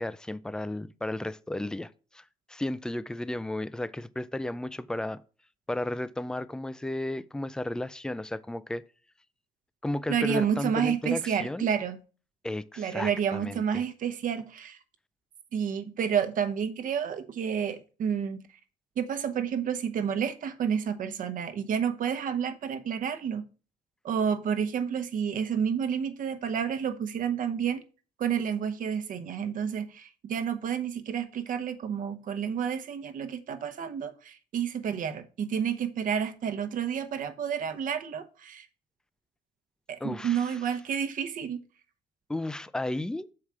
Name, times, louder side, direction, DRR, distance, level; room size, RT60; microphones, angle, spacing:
voice 1, 0.0-5.2 5.7-8.8 9.8-11.7 12.4-13.8 40.0-40.6 42.3-43.3, left 1 dB, 5° left, 0.3 m, -33 dB
voice 2, 10.1-12.0 12.8-14.8 15.5-18.4 19.0-23.5 24.0-27.8 28.2-38.7 39.9-41.6, right 8 dB, 55° right, 0.9 m, -30 dB
7.2 x 4.8 x 4.7 m
cardioid pair, 110°, 17 cm